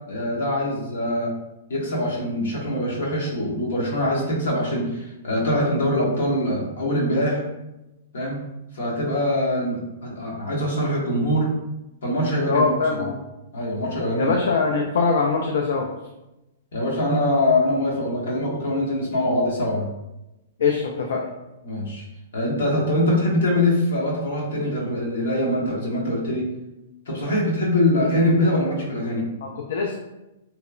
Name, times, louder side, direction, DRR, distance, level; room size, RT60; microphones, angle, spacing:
voice 1, 0.1-1.3 1.7-7.4 8.1-8.4 8.7-11.5 12.0-12.7 13.0-13.1 13.5-14.4 16.7-19.9 21.6-22.0 22.3-26.5 27.1-29.2, left 1 dB, 80° left, -4 dB, 1.0 m, -23 dB
voice 2, 12.5-13.2 14.2-15.9 20.6-21.2 29.4-30.0, left 4 dB, 65° left, 0 dB, 0.3 m, -22 dB
2.9 x 2.1 x 2.3 m, 0.95 s
hypercardioid pair, 175°, 0 cm